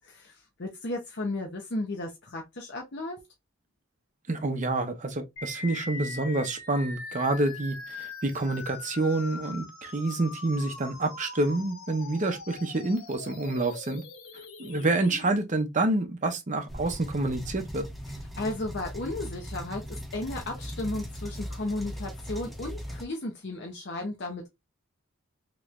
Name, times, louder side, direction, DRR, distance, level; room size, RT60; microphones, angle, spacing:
voice 1, 0.0-3.2 18.4-24.5, left 2 dB, 55° left, 0.7 m, -34 dB
voice 2, 4.3-14.0 14.6-17.8, right 2 dB, 35° right, 0.7 m, -28 dB
sound 1, 5.4-15.4, left 4 dB, 85° left, 1.0 m, -42 dB
sound 2, 16.7-23.1, equal, ahead, 0.7 m, -39 dB
3.2 x 3.0 x 2.3 m
head